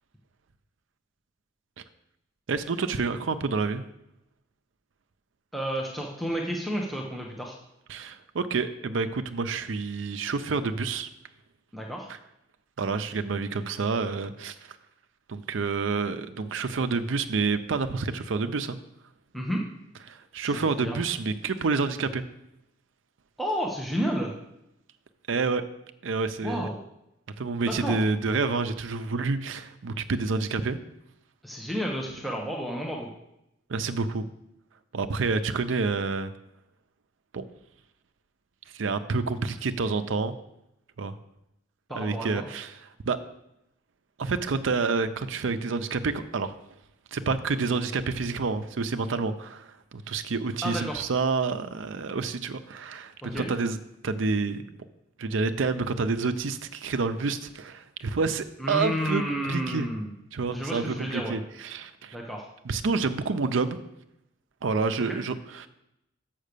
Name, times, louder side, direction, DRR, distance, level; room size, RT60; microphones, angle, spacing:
voice 1, 2.5-3.8 7.9-11.1 12.8-14.5 15.3-18.8 20.1-22.2 25.3-25.6 26.0-26.7 27.4-30.8 33.7-34.3 34.9-36.3 37.3-37.4 38.7-40.3 41.0-41.2 41.9-42.7 43.0-43.2 44.2-46.5 47.1-53.8 54.0-54.6 55.2-59.9 60.3-62.2 62.6-63.8 64.6-65.7, right 4 dB, 80° right, 10 dB, 0.5 m, -28 dB
voice 2, 5.5-7.6 11.7-12.1 19.3-19.6 20.5-21.0 23.4-24.3 26.4-26.8 27.7-28.0 31.4-33.1 41.9-42.4 50.6-51.0 53.2-53.5 58.6-60.1 60.5-61.4 62.1-62.5 65.1-65.2, equal, ahead, -1 dB, 0.9 m, -31 dB
6.4 x 5.8 x 6.7 m, 0.84 s
head